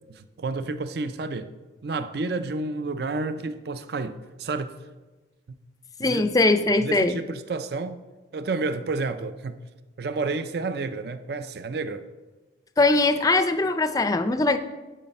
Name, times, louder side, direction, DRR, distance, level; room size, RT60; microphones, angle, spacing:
voice 1, 0.1-1.5 1.8-4.7 6.0-6.2 6.7-8.0 8.3-9.6 10.0-12.0, right 3 dB, 55° right, 11 dB, 0.5 m, -30 dB
voice 2, 6.0-7.2 12.8-14.6, left 2 dB, 20° left, 10 dB, 0.4 m, -21 dB
11.0 x 5.6 x 5.3 m, 1.2 s
head